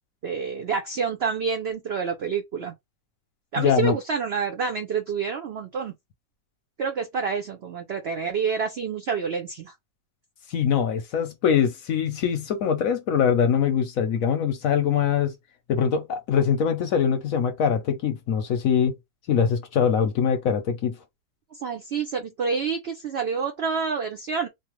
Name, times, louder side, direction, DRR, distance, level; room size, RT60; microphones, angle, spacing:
voice 1, 0.2-2.7 3.5-5.9 6.8-9.7 21.5-24.5, right 5 dB, 90° right, 0.5 m, -28 dB
voice 2, 3.6-3.9 10.5-15.3 15.7-18.9 19.3-21.0, left 7 dB, 65° left, 0.9 m, -23 dB
3.1 x 2.0 x 3.0 m
omnidirectional pair, 1.8 m